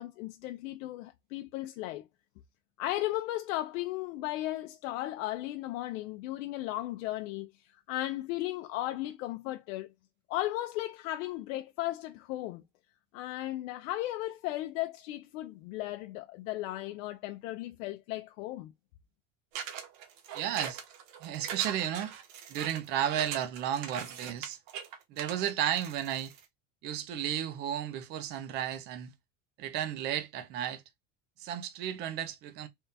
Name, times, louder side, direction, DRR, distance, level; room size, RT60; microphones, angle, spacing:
voice 1, 0.0-2.0 2.8-9.9 10.3-12.6 13.1-18.7, left 15 dB, 90° left, 0.5 m, -36 dB
sound 1, 19.5-26.4, right 7 dB, 80° right, 1.1 m, -41 dB
voice 2, 20.3-20.8 21.2-22.2 22.5-24.6 25.1-26.3 26.8-29.1 29.6-30.8 31.4-32.7, right 10 dB, 30° right, 0.4 m, -33 dB
3.6 x 2.2 x 4.0 m
cardioid pair, 170°, 38 cm